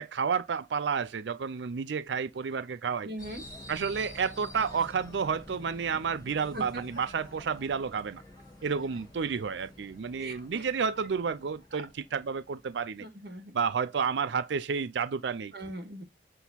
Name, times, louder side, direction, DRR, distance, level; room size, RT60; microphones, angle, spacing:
voice 1, 0.0-3.1 3.7-8.2 8.6-13.1 13.5-15.5, right 6 dB, 80° right, 0.5 m, -31 dB
voice 2, 3.0-3.4 6.5-6.6 10.1-10.7 13.0-13.5 15.5-16.0, right 1 dB, 60° right, 1.8 m, -40 dB
sound 1, 3.2-13.1, left 1 dB, 20° left, 2.0 m, -49 dB
8.1 x 3.8 x 4.2 m
head